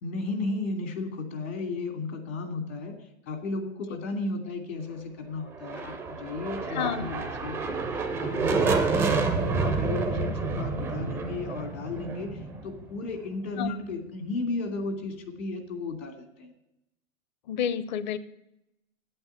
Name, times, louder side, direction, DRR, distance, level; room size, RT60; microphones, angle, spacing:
voice 1, 0.0-2.9 3.3-7.8 8.2-16.5, left 3 dB, 80° left, 5 dB, 2.8 m, -34 dB
sound 1, 5.5-13.3, right 4 dB, 5° right, 0.4 m, -29 dB
voice 2, 6.7-7.1 13.6-13.8 17.5-18.2, left 8 dB, 35° left, 15 dB, 0.6 m, -29 dB
8.7 x 8.3 x 9.2 m, 0.87 s
hypercardioid pair, 160°, 39 cm